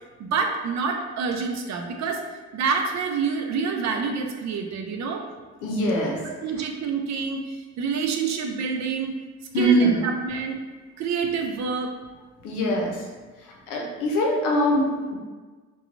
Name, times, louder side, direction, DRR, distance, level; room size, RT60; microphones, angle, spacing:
voice 1, 0.2-2.2 2.5-5.2 6.2-9.1 9.6-10.6 11.0-11.9, right 5 dB, 65° right, 4 dB, 0.5 m, -27 dB
voice 2, 5.6-6.2 9.5-10.1 12.4-13.0 13.7-15.2, equal, 85° left, -1 dB, 0.7 m, -22 dB
3.0 x 2.2 x 2.5 m, 1.4 s
cardioid pair, 90°, 30 cm